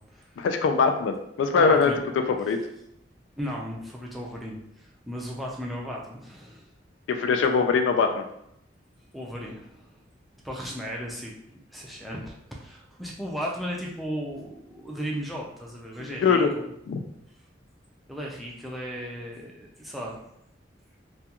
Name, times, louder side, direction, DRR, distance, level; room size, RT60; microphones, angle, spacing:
voice 1, 0.4-1.9 2.3-2.6 7.1-8.3 16.0-16.5 16.9-17.0, left 5 dB, 85° left, 6 dB, 0.3 m, -22 dB
voice 2, 1.6-2.0 3.4-6.7 7.6-7.7 9.1-9.9 10.4-16.6 18.1-20.2, equal, ahead, -3 dB, 0.3 m, -36 dB
2.4 x 2.2 x 2.8 m, 0.76 s
head